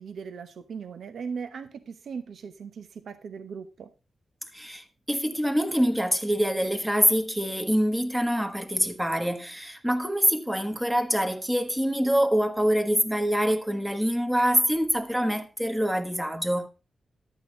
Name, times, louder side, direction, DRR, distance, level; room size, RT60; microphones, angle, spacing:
voice 1, 0.0-3.9, right 6 dB, 70° right, 1.0 m, -38 dB
voice 2, 4.5-16.7, equal, 5° right, 1.2 m, -25 dB
12.0 x 8.3 x 3.8 m
wide cardioid pair, 140°, 0 cm